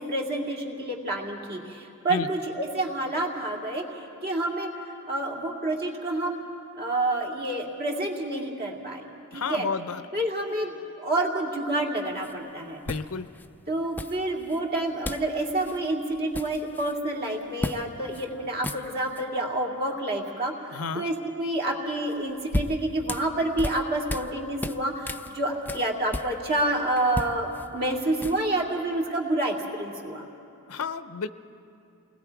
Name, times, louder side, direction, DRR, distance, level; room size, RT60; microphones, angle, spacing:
voice 1, 0.0-3.8 4.2-4.7 5.1-6.4 6.8-9.0 9.3-9.7 10.1-12.8 13.7-30.2, right 1 dB, 45° right, -1 dB, 2.4 m, -28 dB
voice 2, 9.3-10.0 12.8-13.3 20.7-21.1 30.7-31.3, left 5 dB, 70° left, 12 dB, 0.6 m, -31 dB
sound 1, 12.2-12.3 12.9-13.5 14.0-14.6 15.0-15.3 15.6-15.8 16.1-17.0 17.6-17.8 18.1-18.3 18.5-19.2 22.1-24.3 24.6-26.6 27.0-28.6, left 1 dB, 10° left, 0.4 m, -34 dB
28.5 x 19.5 x 4.7 m, 2.7 s
head